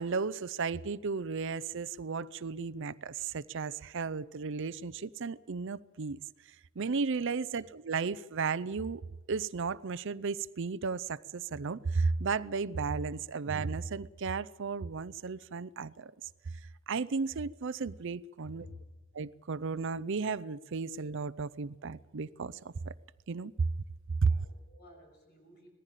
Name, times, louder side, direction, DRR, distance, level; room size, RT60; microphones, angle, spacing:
voice 1, 0.0-6.2 6.8-9.0 9.3-16.1 16.9-18.6 19.1-22.9 23.3-23.7 24.2-24.3, right 4 dB, 60° right, 0.6 m, -34 dB
voice 2, 7.3-7.7 18.4-18.9 24.3-25.7, left 2 dB, 50° left, 6.3 m, -53 dB
20.0 x 15.0 x 9.1 m
head